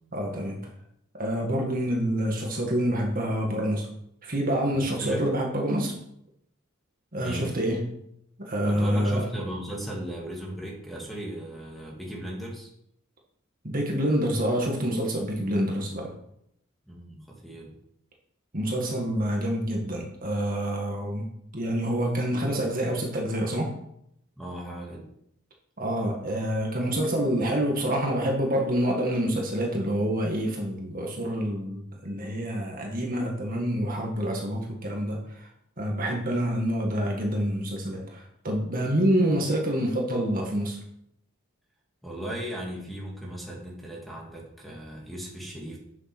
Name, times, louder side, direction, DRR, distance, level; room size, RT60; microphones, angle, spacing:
voice 1, 0.1-0.6 1.1-3.9 4.2-6.0 7.1-8.0 8.4-9.3 13.6-16.1 18.5-21.3 21.5-23.7 25.8-35.5 35.8-40.8, equal, 40° right, 0 dB, 2.0 m, -27 dB
voice 2, 4.7-5.2 7.2-7.5 8.6-12.7 16.8-17.7 24.4-25.1 42.0-45.8, right 1 dB, ahead, -2 dB, 2.3 m, -37 dB
9.1 x 7.3 x 6.2 m, 0.74 s
head